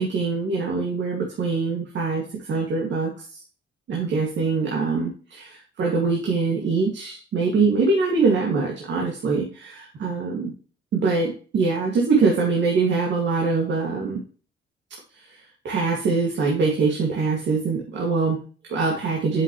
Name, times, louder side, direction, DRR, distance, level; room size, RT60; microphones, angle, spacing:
voice 1, 0.0-3.4 3.9-10.5 10.9-14.2 15.2-19.4, right 4 dB, 65° right, -1 dB, 2.3 m, -23 dB
8.3 x 7.4 x 3.2 m, 0.39 s
cardioid pair, 90°, 20 cm